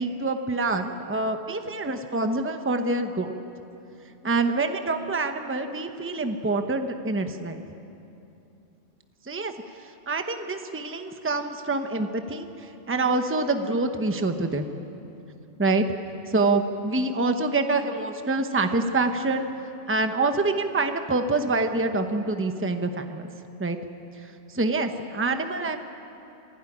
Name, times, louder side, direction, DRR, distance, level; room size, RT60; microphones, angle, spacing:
voice 1, 0.0-3.3 4.2-7.6 9.2-9.5 9.8-14.6 15.6-15.9 16.3-19.5 19.9-23.3 23.6-23.8 24.1-25.8, right 3 dB, 10° right, 6 dB, 0.9 m, -26 dB
24.0 x 15.5 x 10.0 m, 2.9 s
omnidirectional pair, 1.3 m